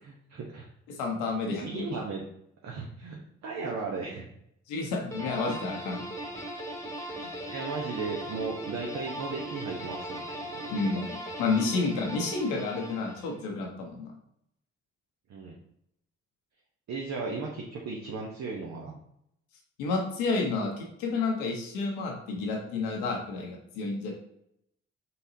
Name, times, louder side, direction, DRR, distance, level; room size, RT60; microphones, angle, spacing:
voice 1, 0.0-0.7 1.5-2.2 2.6-4.3 5.3-5.6 7.1-11.0 11.6-11.8 15.3-15.6 16.9-18.9, right 4 dB, 55° right, -1 dB, 0.8 m, -36 dB
voice 2, 0.9-1.9 4.7-6.0 10.7-14.1 19.8-24.1, left 3 dB, 80° left, 1 dB, 0.9 m, -30 dB
sound 1, 5.1-13.4, right 1 dB, 10° left, 1.3 m, -38 dB
4.1 x 3.8 x 2.7 m, 0.76 s
hypercardioid pair, 40°, 33 cm